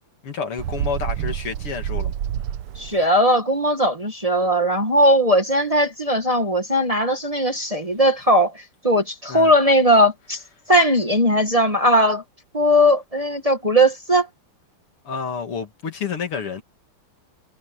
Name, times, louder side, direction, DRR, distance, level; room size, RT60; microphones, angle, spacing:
voice 1, 0.2-2.1 9.3-9.5 15.0-16.6, left 6 dB, 80° left, 3.4 m, -29 dB
Bird, 0.6-3.0, right 10 dB, 85° right, 1.8 m, -28 dB
voice 2, 2.8-8.5 8.8-10.4 10.7-12.2 12.5-14.3, equal, 15° right, 1.7 m, -18 dB
omnidirectional pair, 2.4 m